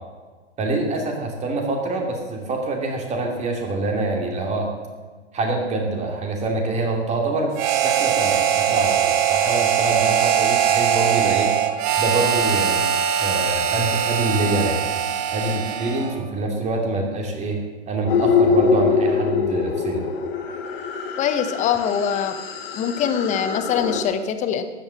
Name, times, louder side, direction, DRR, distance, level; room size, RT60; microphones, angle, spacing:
voice 1, 0.6-4.7 5.3-7.5 7.8-11.5 12.0-12.9 13.2-14.9 15.3-17.6 17.9-20.0, right 2 dB, 20° right, 2 dB, 2.7 m, -25 dB
Harmonica, 7.5-16.2, right 9 dB, 35° right, 1.2 m, -21 dB
sound 1, 18.1-24.0, left 5 dB, 50° left, 2.0 m, -23 dB
voice 2, 21.2-22.4 22.7-24.6, left 8 dB, 20° left, 9 dB, 1.0 m, -23 dB
13.0 x 9.1 x 7.5 m, 1.4 s
hypercardioid pair, 125°, 35 cm